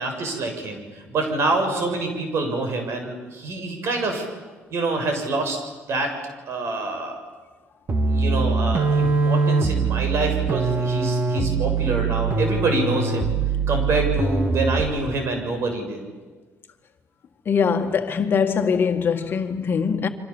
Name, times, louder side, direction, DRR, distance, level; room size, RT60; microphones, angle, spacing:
voice 1, 0.0-4.3 4.7-5.6 5.9-6.1 6.5-7.2 8.1-13.3 13.7-16.0, right 2 dB, 60° right, 7.0 m, -26 dB
sound 1, 7.9-15.0, right 4 dB, 40° right, 2.4 m, -22 dB
voice 2, 17.5-20.1, left 6 dB, 45° left, 1.9 m, -22 dB
28.5 x 25.0 x 7.4 m
cardioid pair, 110°, 5 cm